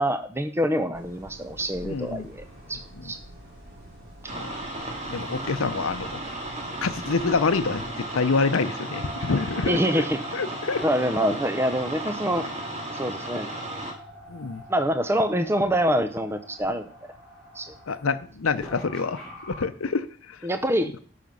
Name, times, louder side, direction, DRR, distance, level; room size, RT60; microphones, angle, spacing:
voice 1, 0.0-3.2 9.6-10.2 10.8-12.5 12.9-13.5 14.7-16.9 17.5-17.7 20.4-20.9, equal, 10° right, 9 dB, 0.6 m, -25 dB
sound 1, 0.9-7.9, right 1 dB, 45° right, 3.1 m, -47 dB
sound 2, 1.6-19.6, equal, 5° left, 4.7 m, -46 dB
voice 2, 1.8-2.3 3.0-3.1 4.3-4.6 5.1-6.2 6.8-10.0 10.3-10.8 14.3-14.6 17.9-19.2 19.6-20.4, left 4 dB, 80° left, 11 dB, 0.7 m, -27 dB
sound 3, 4.3-13.9, right 1 dB, 30° right, 2.0 m, -35 dB
12.5 x 5.9 x 5.4 m, 0.43 s
head